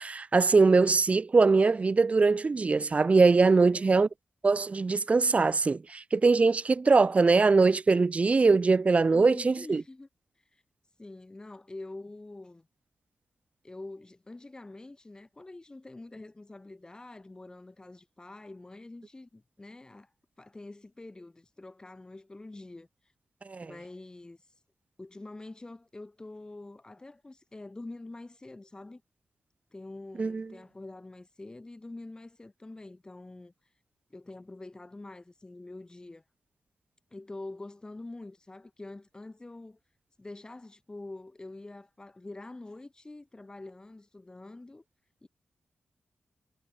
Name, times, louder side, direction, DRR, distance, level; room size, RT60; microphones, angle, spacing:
voice 1, 0.0-4.1 4.4-9.8 23.5-23.7 30.2-30.4, right 4 dB, 35° right, 1.2 m, -22 dB
voice 2, 3.6-4.1 9.1-10.1 10.5-10.6 11.0-12.7 13.6-20.1 20.4-22.9 23.6-24.4 25.0-29.0 29.7-33.5 34.1-36.2 37.1-39.8 40.2-44.8 45.2-45.3, left 2 dB, 20° left, 6.5 m, -45 dB
wide cardioid pair, 105°, 4 cm